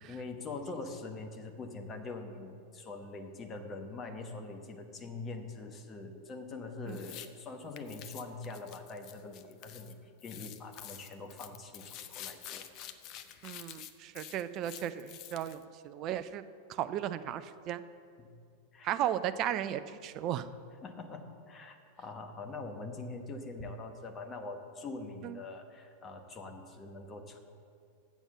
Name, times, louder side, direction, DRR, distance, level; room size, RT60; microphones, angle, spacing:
voice 1, 0.1-12.7 18.2-18.3 18.7-19.0 20.8-27.4, left 3 dB, 25° left, 4 dB, 1.1 m, -43 dB
sound 1, 6.9-7.3 7.8-9.9 10.2-15.6, left 11 dB, 40° left, 0.5 m, -48 dB
voice 2, 13.4-16.4 16.7-17.8 18.8-20.5 25.2-25.4, right 11 dB, 35° right, 12 dB, 0.4 m, -35 dB
8.3 x 7.2 x 7.1 m, 2.3 s
figure-of-eight pair, 90°, 0 cm